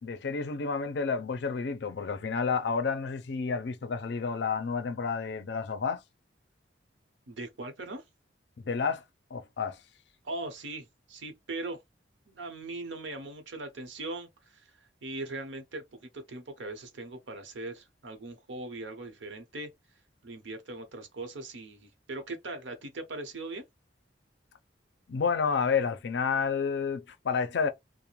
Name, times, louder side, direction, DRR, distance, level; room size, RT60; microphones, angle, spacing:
voice 1, 0.0-6.0 8.6-9.0 9.3-9.8 25.1-27.7, left 5 dB, 65° left, 0.4 m, -30 dB
voice 2, 7.3-8.0 10.2-11.8 12.3-14.7 15.0-19.7 20.2-23.6, right 2 dB, 90° right, 0.8 m, -40 dB
2.4 x 2.0 x 3.0 m
head